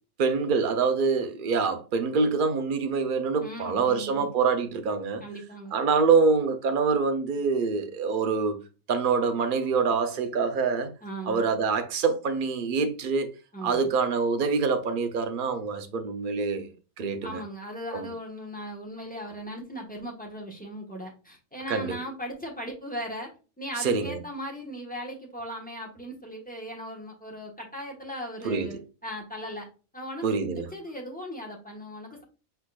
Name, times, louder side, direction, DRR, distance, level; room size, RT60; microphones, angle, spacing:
voice 1, 0.2-5.2 5.7-8.6 8.9-10.9 11.3-13.3 13.6-16.7 17.0-17.4 17.9-18.1 21.7-22.0 23.8-24.2 28.4-28.7 30.2-30.7, right 5 dB, 50° right, 0.7 m, -25 dB
voice 2, 3.4-4.3 5.2-5.8 11.0-11.5 13.5-14.0 17.2-23.3 23.6-29.7 29.9-32.2, equal, 5° left, 1.2 m, -38 dB
5.0 x 4.4 x 2.4 m
omnidirectional pair, 1.4 m